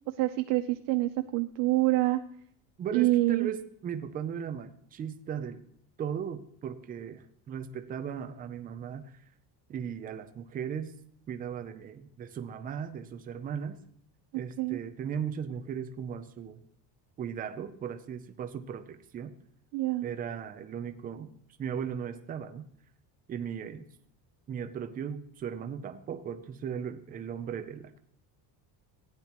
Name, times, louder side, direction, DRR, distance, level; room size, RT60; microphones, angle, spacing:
voice 1, 0.2-2.2 2.9-3.5 14.6-14.8 19.7-20.1, right 18 dB, 75° right, 8 dB, 0.7 m, -26 dB
voice 2, 2.8-5.6 6.0-9.1 9.7-10.9 11.3-13.8 14.3-16.6 17.2-19.3 20.0-21.3 21.6-22.6 23.3-23.9 24.5-28.0, right 8 dB, 20° right, 8 dB, 0.5 m, -37 dB
15.5 x 9.7 x 3.0 m, 0.66 s
cardioid pair, 180°, 44 cm